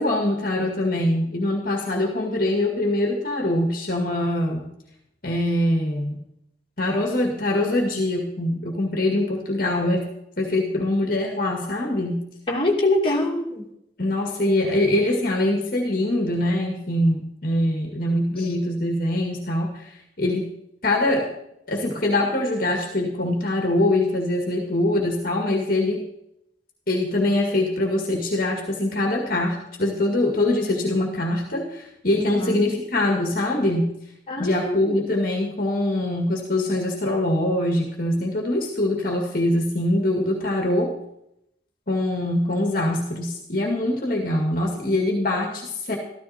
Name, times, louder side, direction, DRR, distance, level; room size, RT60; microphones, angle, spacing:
voice 1, 0.0-4.7 5.2-6.2 6.8-10.1 10.4-12.2 14.0-20.5 20.8-21.3 21.7-26.0 26.9-33.9 34.4-40.9 41.9-46.0, left 1 dB, 45° left, 1 dB, 2.0 m, -23 dB
voice 2, 12.5-13.6 32.3-32.6 34.3-35.0, left 1 dB, 25° left, -3 dB, 2.7 m, -24 dB
14.0 x 13.5 x 4.3 m, 0.78 s
head